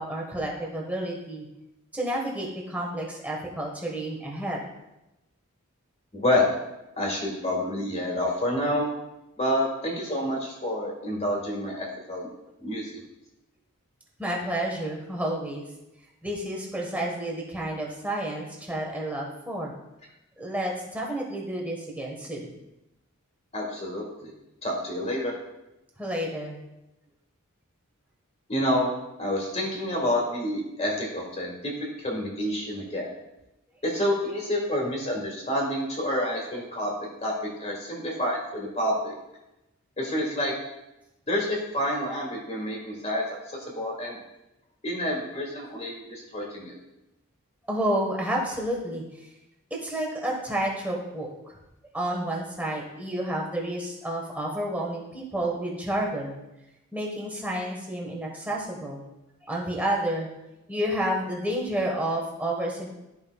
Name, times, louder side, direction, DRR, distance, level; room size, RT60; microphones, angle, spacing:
voice 1, 0.0-1.5 1.9-4.6 14.2-15.7 16.2-19.7 20.4-22.6 26.0-26.6 47.7-49.3 49.8-51.5 51.9-56.4 56.9-59.0 59.4-60.3 60.7-62.9, right 1 dB, 5° right, -2 dB, 1.3 m, -30 dB
voice 2, 6.1-6.5 7.0-8.9 9.4-12.3 12.6-13.0 23.5-24.3 24.6-25.3 28.5-28.9 29.2-31.7 32.0-33.1 33.8-39.1 40.0-40.5 41.3-44.2 44.8-46.7, left 1 dB, 30° left, -2 dB, 1.7 m, -28 dB
12.5 x 5.3 x 2.3 m, 0.95 s
head